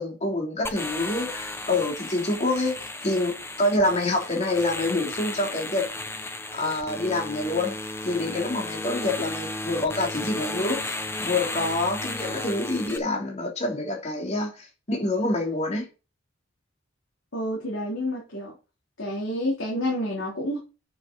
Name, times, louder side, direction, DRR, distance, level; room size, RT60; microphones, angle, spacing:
voice 1, 0.0-2.8 3.0-5.8 6.5-7.7 8.0-10.9 11.2-15.9, left 2 dB, 35° left, 3.2 m, -26 dB
sound 1, 0.6-13.0, left 2 dB, 15° left, 0.9 m, -34 dB
voice 2, 17.3-18.5 19.0-20.6, left 1 dB, 70° left, 3.4 m, -29 dB
8.8 x 6.5 x 5.2 m
head